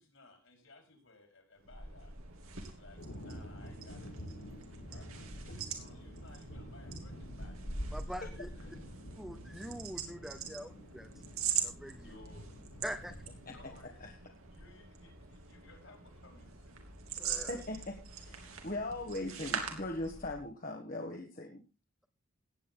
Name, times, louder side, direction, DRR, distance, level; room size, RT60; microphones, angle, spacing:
voice 1, 0.0-2.1 2.6-4.1 4.8-7.6 8.0-8.7 12.0-12.5 13.5-14.0 14.5-16.8, left 2 dB, 65° left, 3 dB, 4.8 m, -59 dB
sound 1, 1.6-20.5, right 7 dB, 80° right, 2.7 m, -43 dB
sound 2, 3.0-13.9, equal, 80° left, 4.6 m, -46 dB
voice 2, 7.9-8.5 9.2-11.1 11.6-12.1 12.8-13.1 17.2-17.6, equal, ahead, 8 dB, 0.7 m, -44 dB
voice 3, 17.5-21.6, left 2 dB, 40° left, 2 dB, 1.5 m, -40 dB
17.0 x 9.0 x 3.8 m, 0.30 s
head